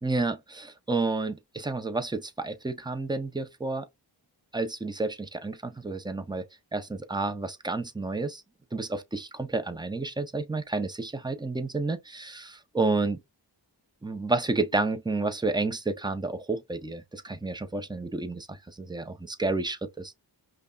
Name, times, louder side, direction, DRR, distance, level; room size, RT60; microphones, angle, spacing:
voice 1, 0.0-3.9 4.5-6.5 6.7-8.4 8.7-13.2 14.0-20.1, right 3 dB, 10° right, 0.6 m, -30 dB
5.3 x 2.2 x 2.3 m
wide cardioid pair, 80°, 43 cm